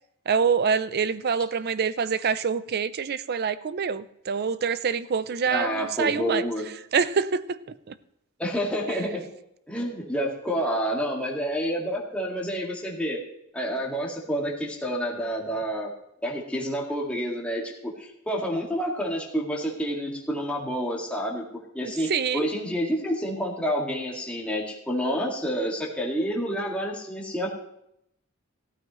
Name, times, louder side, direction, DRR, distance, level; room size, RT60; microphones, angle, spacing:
voice 1, 0.3-6.4 6.9-7.6 7.9-8.0 8.9-9.0 22.1-22.5, right 6 dB, 45° right, 16 dB, 0.5 m, -26 dB
voice 2, 5.5-6.7 8.4-9.3 9.7-13.2 13.5-15.9 16.2-21.4 21.7-22.1 22.3-27.5, equal, 5° left, -3 dB, 2.0 m, -29 dB
15.5 x 13.0 x 3.1 m, 0.78 s
head